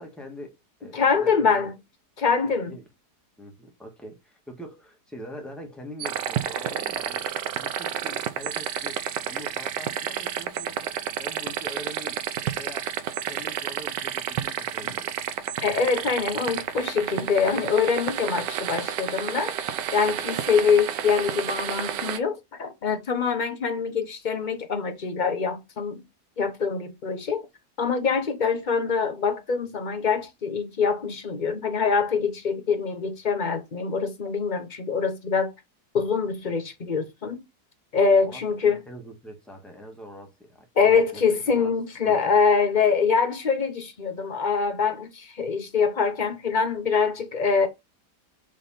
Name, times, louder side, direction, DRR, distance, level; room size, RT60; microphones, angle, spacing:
voice 1, 0.0-1.7 2.7-2.8 3.4-12.9 13.3-15.1 38.2-41.7 42.0-42.3, equal, ahead, 1.5 m, -43 dB
voice 2, 0.9-1.7 2.2-2.7 14.8-14.9 15.6-19.5 19.9-26.0 26.4-27.5 27.8-35.5 35.9-37.4 37.9-38.8 40.8-47.7, left 5 dB, 40° left, 0.7 m, -24 dB
sound 1, 6.0-22.2, right 9 dB, 85° right, 1.3 m, -30 dB
5.2 x 3.5 x 5.7 m
omnidirectional pair, 1.8 m